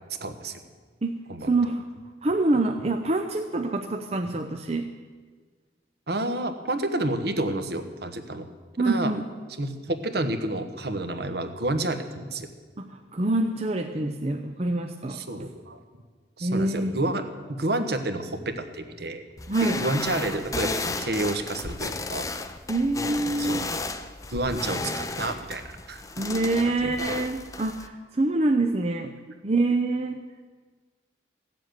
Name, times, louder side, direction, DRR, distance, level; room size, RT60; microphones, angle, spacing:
voice 1, 0.2-0.6 1.3-1.5 6.1-8.5 8.8-9.1 9.6-12.5 15.1-15.8 16.4-17.2 17.5-19.2 19.6-22.3 23.4-23.6 24.3-25.6 25.9-26.0 26.8-26.9, right 2 dB, 60° right, 7 dB, 1.2 m, -29 dB
voice 2, 1.0-1.9 2.2-4.9 8.8-9.2 12.8-15.2 16.4-16.9 19.5-19.8 22.7-23.7 26.2-29.1 29.4-30.2, right 2 dB, 35° right, 5 dB, 0.6 m, -26 dB
sound 1, 19.4-27.9, left 3 dB, 20° left, 0.6 m, -33 dB
15.5 x 7.6 x 9.2 m, 1.5 s
head